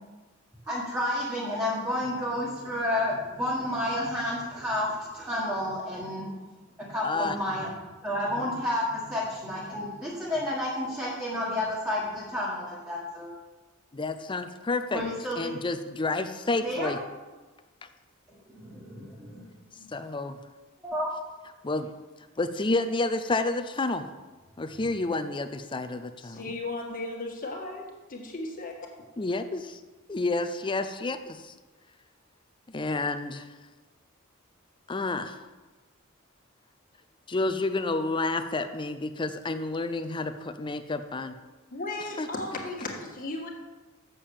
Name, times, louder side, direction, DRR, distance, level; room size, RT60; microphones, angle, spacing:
voice 1, 0.7-6.3 6.8-7.7 8.0-13.3 14.9-15.5 16.6-16.9 18.5-19.5 19.8-19.9 20.8-21.1 24.8-24.9, left 1 dB, 10° right, -7 dB, 1.7 m, -31 dB
voice 2, 7.0-7.4 13.9-15.0 15.4-17.0 19.9-20.4 21.6-21.9 22.4-24.0 24.6-26.6 29.2-29.8 30.1-31.5 32.7-33.5 34.9-35.4 37.3-41.3 42.2-42.3, left 2 dB, 20° left, 9 dB, 0.5 m, -30 dB
voice 3, 26.2-28.9 41.7-43.5, left 2 dB, 40° left, 0 dB, 1.7 m, -36 dB
7.5 x 6.8 x 7.1 m, 1.2 s
head